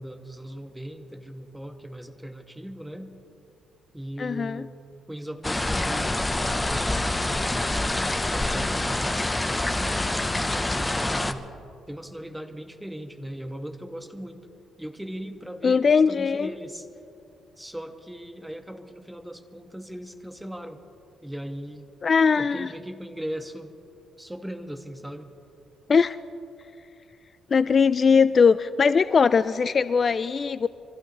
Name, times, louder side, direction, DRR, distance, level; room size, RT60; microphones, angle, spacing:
voice 1, 0.0-3.1 3.9-4.7 5.1-6.9 7.2-7.7 8.0-9.2 10.4-11.5 11.9-14.5 14.8-16.9 17.6-20.8 21.2-21.9 22.4-23.8 24.2-25.3, equal, 5° right, 6 dB, 1.3 m, -38 dB
voice 2, 4.2-4.6 15.6-16.5 22.0-22.7 25.9-26.2 27.5-30.7, left 5 dB, 40° left, 14 dB, 0.3 m, -20 dB
sound 1, 5.4-11.3, left 2 dB, 15° left, 0.7 m, -26 dB
24.5 x 15.5 x 3.1 m, 2.6 s
cardioid pair, 90°, 0 cm